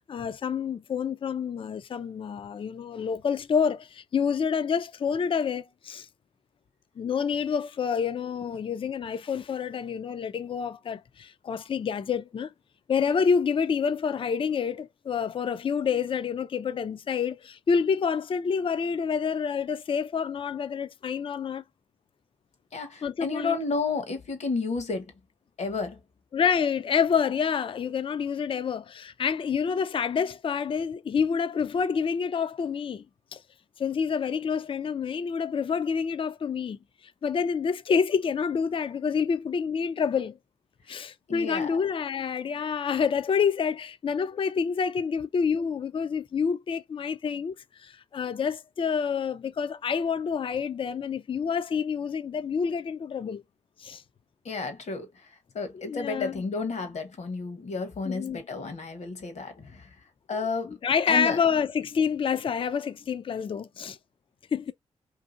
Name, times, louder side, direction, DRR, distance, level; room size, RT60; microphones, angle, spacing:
voice 1, 0.1-6.1 7.0-12.5 12.9-21.6 23.0-23.6 26.3-33.0 33.3-33.4 33.8-40.4 40.9-53.4 53.8-54.0 55.8-56.4 58.0-58.4 60.3-64.0 64.5-64.7, left 6 dB, 45° left, 0.4 m, -28 dB
voice 2, 22.7-25.1 25.6-26.0 40.9-41.0 41.3-41.8 54.4-59.9 60.3-60.8 61.1-61.4, left 4 dB, 65° left, 0.9 m, -32 dB
2.6 x 2.6 x 2.5 m
supercardioid pair, 45°, 13 cm